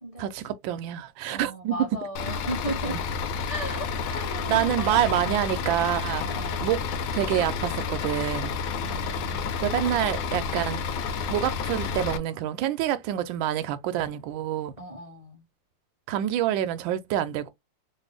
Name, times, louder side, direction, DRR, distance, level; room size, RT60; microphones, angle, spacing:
voice 1, 0.2-1.9 2.8-3.0 4.5-6.8 7.1-8.5 9.6-11.0 11.3-14.7 16.1-17.5, right 11 dB, 75° right, 1.3 m, -27 dB
voice 2, 1.3-3.0 3.5-5.5 6.2-6.7 8.8-10.1 14.8-15.4, right 1 dB, 20° left, 1.2 m, -37 dB
Bus / Idling, 2.2-12.2, left 5 dB, 75° left, 1.4 m, -30 dB
3.3 x 2.5 x 3.3 m
omnidirectional pair, 2.4 m